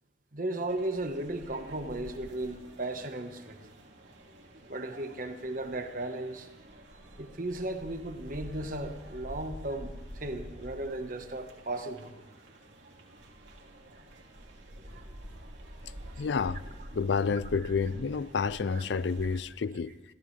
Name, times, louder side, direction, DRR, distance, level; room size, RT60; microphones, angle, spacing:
voice 1, 0.3-3.6 4.7-6.5 7.2-12.1 14.8-15.1 18.7-18.8, right 2 dB, 50° right, 1.3 m, -36 dB
sound 1, 0.7-19.4, right 1 dB, 80° right, 2.7 m, -48 dB
voice 2, 16.2-16.6 16.9-20.0, left 5 dB, 75° left, 0.5 m, -29 dB
27.0 x 14.5 x 3.3 m
head